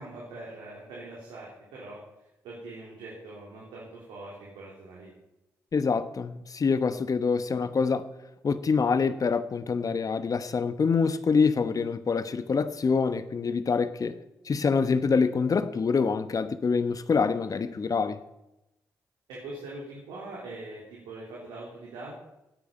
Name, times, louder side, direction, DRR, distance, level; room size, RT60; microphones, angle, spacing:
voice 1, 0.0-5.1 19.3-22.2, right 2 dB, 80° right, 3.4 m, -42 dB
voice 2, 5.7-8.0 8.4-14.2 14.4-18.2, left 5 dB, 45° left, 1.1 m, -25 dB
17.0 x 8.7 x 5.5 m
hypercardioid pair, 40°, 8 cm